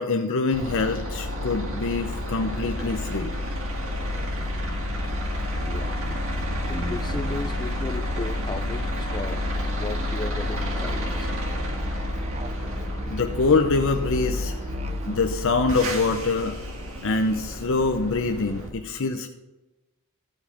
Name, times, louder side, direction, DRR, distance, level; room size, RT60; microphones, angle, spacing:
voice 1, 0.0-3.3 13.1-14.5 15.1-16.5 17.0-19.3, left 3 dB, 60° left, 0.7 m, -24 dB
sound 1, 0.5-18.7, left 1 dB, 65° right, 1.7 m, -30 dB
voice 2, 5.6-5.9 6.7-9.4 9.7-11.3, left 2 dB, 20° left, 0.4 m, -35 dB
Musical instrument, 10.9-15.4, right 2 dB, 30° right, 0.6 m, -38 dB
14.0 x 5.3 x 5.1 m
head